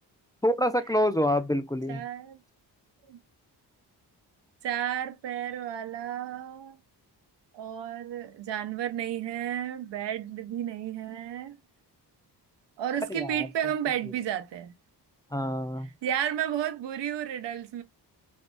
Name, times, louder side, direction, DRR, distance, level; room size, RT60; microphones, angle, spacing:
voice 1, 0.4-2.0 13.1-13.5 15.3-15.9, equal, 10° left, 0.4 m, -26 dB
voice 2, 1.9-2.4 3.1-3.2 4.6-6.8 7.5-11.6 12.8-14.7 16.0-17.8, right 10 dB, 85° right, 0.7 m, -32 dB
2.6 x 2.4 x 3.6 m
cardioid pair, 80°, 42 cm